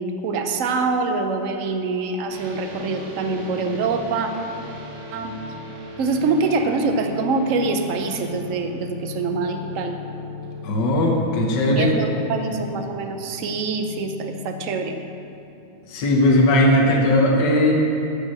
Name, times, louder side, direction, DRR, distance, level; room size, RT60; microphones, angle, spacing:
voice 1, 0.0-4.3 5.1-5.4 6.0-9.9 11.8-15.0, right 4 dB, 65° right, 5 dB, 0.8 m, -25 dB
sound 1, 2.3-16.5, left 3 dB, 80° right, 2.2 m, -38 dB
voice 2, 10.6-11.9 15.9-17.7, left 1 dB, 60° left, -1 dB, 1.6 m, -18 dB
12.0 x 5.4 x 7.5 m, 2.7 s
omnidirectional pair, 2.3 m